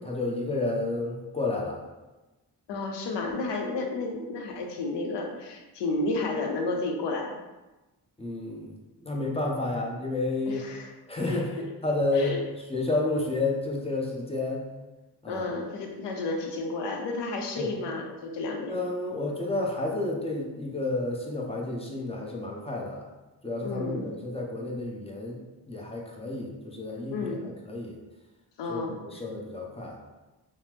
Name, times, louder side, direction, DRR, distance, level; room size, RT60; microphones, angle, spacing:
voice 1, 0.1-1.8 8.2-8.7 9.0-10.7 11.1-11.5 11.8-14.6 15.2-15.4 17.6-17.7 18.7-23.0 23.4-27.3 27.7-28.0 28.7-30.0, left 2 dB, 15° left, -2 dB, 0.6 m, -30 dB
voice 2, 2.7-7.3 10.5-10.9 11.3-11.7 12.1-12.4 15.3-18.8 23.6-24.1 27.1-27.4 28.6-29.0, left 3 dB, 85° left, 2 dB, 0.6 m, -32 dB
3.0 x 2.0 x 3.2 m, 1.1 s
cardioid pair, 75°, 41 cm